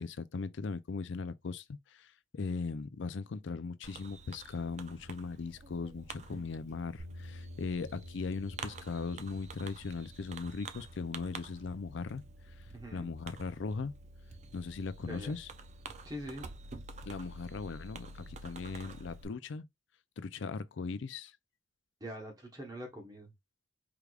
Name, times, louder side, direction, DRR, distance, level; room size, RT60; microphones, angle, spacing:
voice 1, 0.0-12.2 12.9-13.9 14.5-15.5 17.1-19.7 20.2-21.3, left 4 dB, 65° left, 0.4 m, -39 dB
Fireworks, 3.8-19.3, right 3 dB, 35° right, 0.4 m, -49 dB
sound 1, 7.0-15.1, left 1 dB, 80° right, 1.8 m, -53 dB
voice 2, 12.7-13.1 15.1-15.4 16.0-16.5 22.0-23.3, equal, 20° right, 1.1 m, -44 dB
4.8 x 3.4 x 2.4 m
head